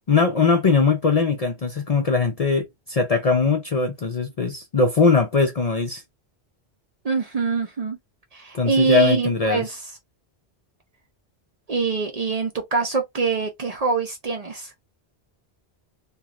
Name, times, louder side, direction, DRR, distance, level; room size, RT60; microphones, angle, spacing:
voice 1, 0.1-6.0 8.5-9.6, left 4 dB, 50° left, 0.5 m, -20 dB
voice 2, 7.0-8.0 8.3-9.7 11.7-14.7, right 4 dB, 45° right, 0.6 m, -24 dB
3.0 x 2.3 x 2.3 m
omnidirectional pair, 1.1 m